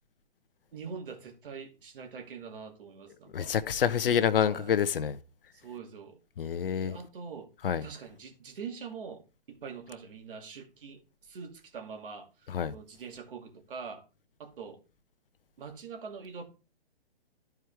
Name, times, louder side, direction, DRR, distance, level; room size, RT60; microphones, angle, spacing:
voice 1, 0.7-3.5 4.5-4.7 5.5-6.2 6.8-7.5 7.8-14.0 14.4-14.8 15.6-16.4, right 5 dB, 60° right, 2.4 m, -44 dB
voice 2, 3.3-5.2 6.4-6.9 7.6-7.8 12.5-12.7, left 8 dB, 65° left, 0.9 m, -27 dB
12.5 x 4.7 x 3.5 m
hypercardioid pair, 135°, 30 cm